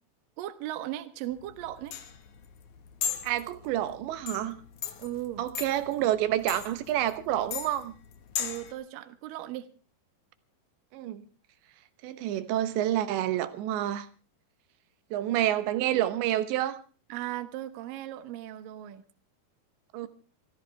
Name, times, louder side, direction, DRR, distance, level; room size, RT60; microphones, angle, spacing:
voice 1, 0.4-1.9 5.0-5.5 8.4-9.7 17.1-19.0, right 14 dB, 65° right, 2.6 m, -37 dB
sound 1, 1.3-8.7, left 8 dB, 60° left, 2.3 m, -38 dB
voice 2, 3.2-4.6 5.4-7.9 10.9-11.2 12.0-14.1 15.1-16.8 19.9-20.1, right 12 dB, 85° right, 3.3 m, -28 dB
26.0 x 15.0 x 3.4 m
omnidirectional pair, 5.0 m